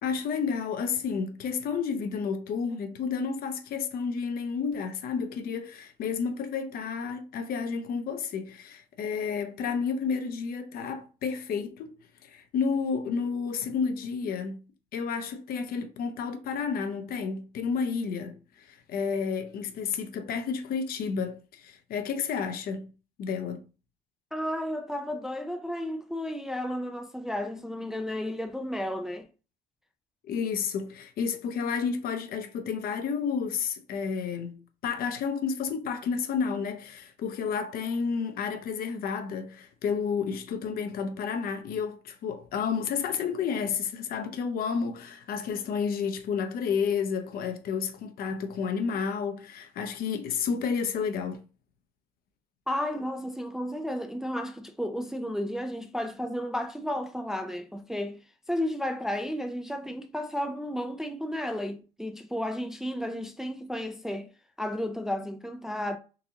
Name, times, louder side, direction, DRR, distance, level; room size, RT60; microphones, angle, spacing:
voice 1, 0.0-11.9 12.2-14.6 14.9-22.9 23.2-23.6 30.2-51.4, left 6 dB, 60° left, 0.7 m, -31 dB
voice 2, 24.3-29.3 52.7-58.2 58.5-64.3 64.6-66.0, left 1 dB, 5° right, 0.3 m, -33 dB
4.0 x 2.6 x 2.8 m
cardioid pair, 110°, 17 cm